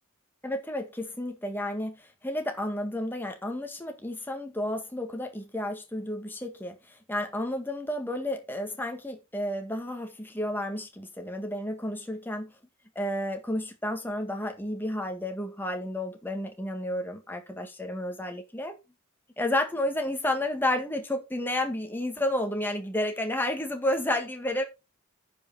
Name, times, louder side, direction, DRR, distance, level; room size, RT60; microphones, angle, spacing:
voice 1, 0.4-6.8 7.1-12.5 13.0-18.8 19.4-24.6, left 1 dB, 10° left, 1.7 m, -31 dB
9.8 x 5.7 x 4.1 m
head